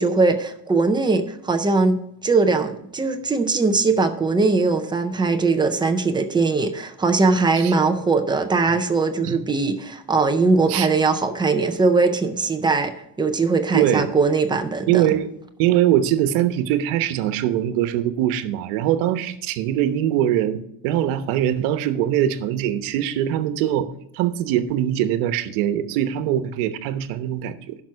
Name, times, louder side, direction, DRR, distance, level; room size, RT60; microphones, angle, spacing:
voice 1, 0.0-12.9 13.2-15.0, right 3 dB, 10° right, 6 dB, 0.4 m, -20 dB
voice 2, 13.7-14.1 14.9-15.3 15.6-27.8, right 11 dB, 80° right, 11 dB, 1.1 m, -22 dB
10.5 x 6.0 x 5.7 m, 0.76 s
cardioid pair, 165°, 48 cm